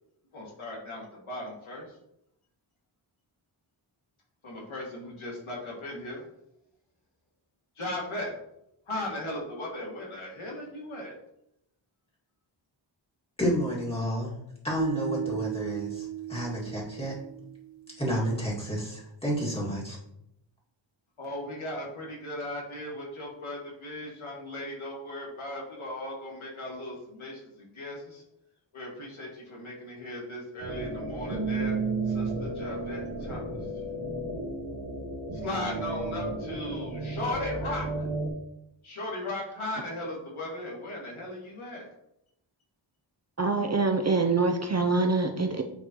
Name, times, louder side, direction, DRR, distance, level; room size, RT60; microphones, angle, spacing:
voice 1, 0.3-2.0 4.4-6.2 7.8-8.4 8.9-11.2 21.2-28.2 28.7-31.8 32.1-33.4 35.3-38.1 38.8-41.9, left 1 dB, 90° left, -3 dB, 2.1 m, -37 dB
voice 2, 13.4-14.3 14.6-17.1 18.0-20.0, equal, 10° left, -5 dB, 2.1 m, -30 dB
sound 1, 14.8-17.9, right 10 dB, 90° right, 1.7 m, -35 dB
sound 2, 30.6-38.3, right 3 dB, 65° right, 1.5 m, -33 dB
voice 3, 43.4-45.6, right 3 dB, 35° right, 5 dB, 0.5 m, -25 dB
9.3 x 3.8 x 3.0 m, 0.79 s
wide cardioid pair, 100°, 47 cm